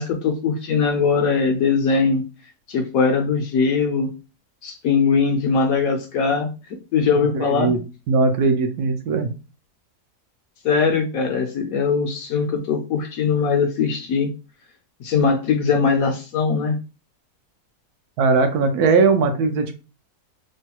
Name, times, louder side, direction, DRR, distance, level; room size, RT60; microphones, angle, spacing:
voice 1, 0.0-2.2 2.7-4.1 4.6-6.5 6.9-7.7 10.6-14.3 15.0-16.8, left 5 dB, 70° left, 3 dB, 0.9 m, -20 dB
voice 2, 7.3-7.8 8.1-9.3 18.2-19.8, right 4 dB, 70° right, 5 dB, 1.0 m, -19 dB
3.1 x 2.2 x 2.8 m, 0.31 s
omnidirectional pair, 1.7 m